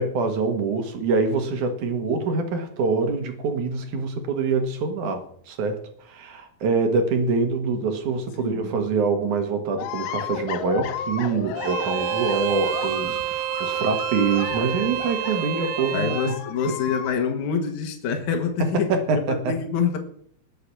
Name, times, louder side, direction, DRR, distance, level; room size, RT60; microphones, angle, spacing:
voice 1, 0.0-16.2 18.6-19.6, right 4 dB, 60° right, 6 dB, 2.7 m, -25 dB
voice 2, 8.4-8.7 15.9-20.0, left 6 dB, 60° left, 4 dB, 2.5 m, -26 dB
sound 1, 9.8-17.3, left 10 dB, 80° left, 2.8 m, -33 dB
Bowed string instrument, 11.6-16.4, right 14 dB, 75° right, 2.5 m, -28 dB
20.0 x 6.8 x 6.0 m, 0.62 s
omnidirectional pair, 4.6 m